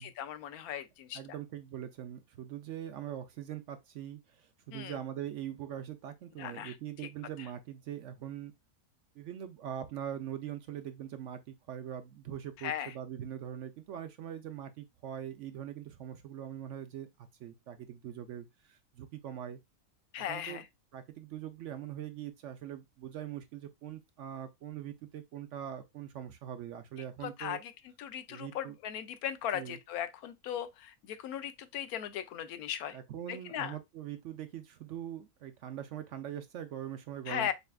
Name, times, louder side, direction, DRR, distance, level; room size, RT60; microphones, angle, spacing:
voice 1, 0.0-1.2 4.7-5.0 6.4-6.7 12.6-12.9 20.1-20.6 27.2-27.7 28.0-33.0 33.3-33.7 37.3-37.5, left 10 dB, 85° left, 1.1 m, -38 dB
voice 2, 1.1-8.5 9.2-17.1 17.4-19.6 20.2-20.6 20.9-27.6 28.3-28.8 29.5-29.8 32.9-37.5, right 10 dB, 65° right, 0.8 m, -42 dB
6.6 x 2.4 x 2.2 m
omnidirectional pair, 1.6 m